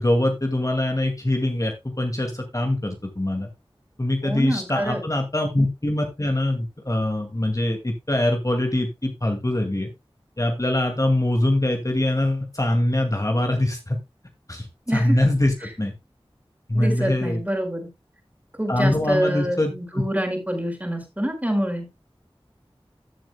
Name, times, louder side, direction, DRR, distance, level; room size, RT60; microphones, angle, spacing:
voice 1, 0.0-3.5 4.0-9.9 10.4-14.0 14.5-14.7 14.9-15.9 16.7-17.4 18.7-20.0, left 1 dB, 35° left, 4 dB, 2.2 m, -23 dB
voice 2, 4.2-5.0 14.9-15.2 16.7-17.9 18.6-21.8, equal, 15° right, 4 dB, 4.2 m, -26 dB
14.5 x 7.8 x 2.2 m, 0.23 s
wide cardioid pair, 50°, 10 cm